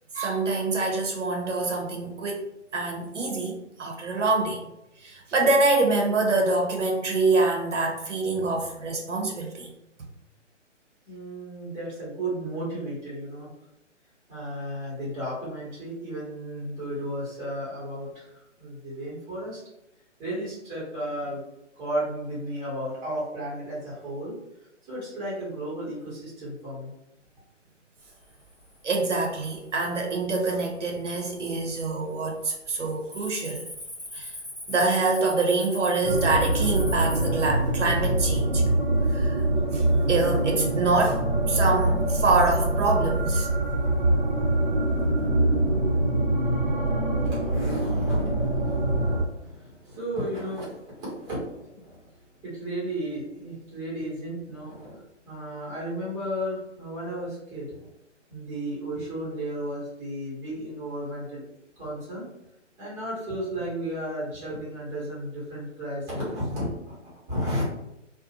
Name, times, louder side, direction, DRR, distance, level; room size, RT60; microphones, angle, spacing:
voice 1, 0.1-4.6 5.0-9.7 28.8-33.6 34.1-34.3 34.7-38.6 39.1-39.4 39.7-43.5, right 3 dB, 75° right, 1 dB, 0.8 m, -25 dB
voice 2, 11.1-13.5 14.3-19.6 20.2-21.4 21.7-24.4 24.9-26.9 47.2-57.9 58.3-61.5 61.8-62.3 62.8-67.6, right 1 dB, 10° right, -7 dB, 0.8 m, -34 dB
Cricket, 28.3-28.7 29.2-29.6 30.2-30.3 30.9-31.5 31.8-32.1 32.4-37.3, left 1 dB, 15° left, 0.4 m, -39 dB
sound 1, 36.0-49.2, right 1 dB, 45° right, 0.6 m, -24 dB
2.6 x 2.1 x 2.7 m, 0.86 s
figure-of-eight pair, 140°, 37 cm